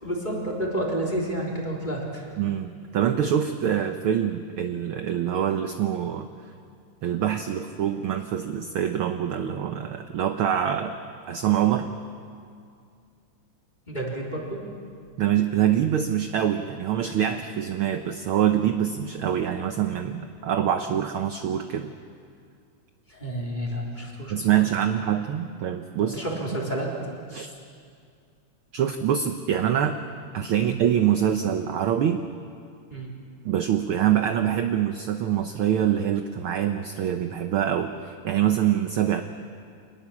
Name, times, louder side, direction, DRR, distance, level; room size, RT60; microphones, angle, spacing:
voice 1, 0.0-2.3 13.9-14.6 23.1-24.5 26.0-26.9 30.6-30.8 32.9-33.1, right 1 dB, 15° left, -2 dB, 3.7 m, -30 dB
voice 2, 2.4-6.3 7.0-11.0 11.3-11.9 15.2-21.9 24.3-26.2 27.3-27.5 28.7-30.0 30.3-32.2 33.4-39.2, right 10 dB, 70° right, 7 dB, 1.3 m, -25 dB
26.0 x 20.0 x 7.3 m, 2.3 s
omnidirectional pair, 3.4 m